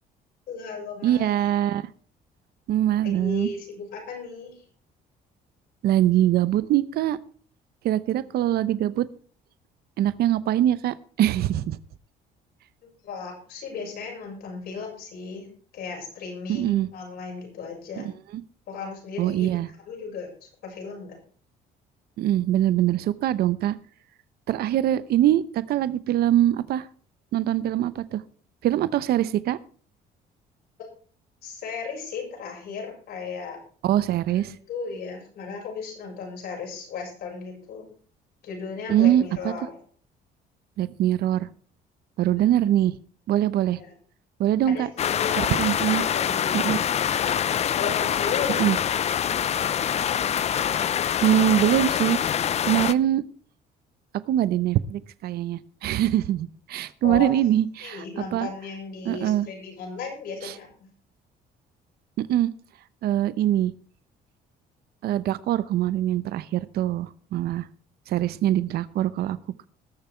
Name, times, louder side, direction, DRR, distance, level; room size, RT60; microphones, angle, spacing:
voice 1, 0.5-1.3 3.0-4.6 12.8-18.1 18.7-21.2 31.4-33.6 34.4-37.9 38.4-39.8 42.3-42.7 43.8-43.9 44.6-45.5 45.8-48.9 57.0-57.3 57.8-60.9, left 5 dB, 70° left, 0 dB, 7.0 m, -36 dB
voice 2, 1.0-1.9 2.7-3.5 5.8-7.2 7.8-9.1 10.0-11.8 16.5-16.9 18.0-18.1 18.3-18.4 19.2-19.7 22.2-23.7 24.5-26.9 27.3-28.2 28.6-29.6 33.8-34.5 38.9-39.5 40.8-41.5 42.2-43.0 43.3-43.8 44.4-44.9 45.4-46.0 46.6-46.8 48.6-48.8 51.2-52.2 52.7-53.2 54.3-58.5 59.0-59.5 60.4-60.5 62.3-62.5 63.0-63.7 65.0-67.7 68.1-69.4, right 12 dB, 70° right, 16 dB, 0.8 m, -23 dB
sound 1, 45.0-52.9, left 9 dB, 40° left, 0.5 m, -25 dB
20.0 x 6.9 x 4.5 m, 0.44 s
cardioid pair, 110°, 17 cm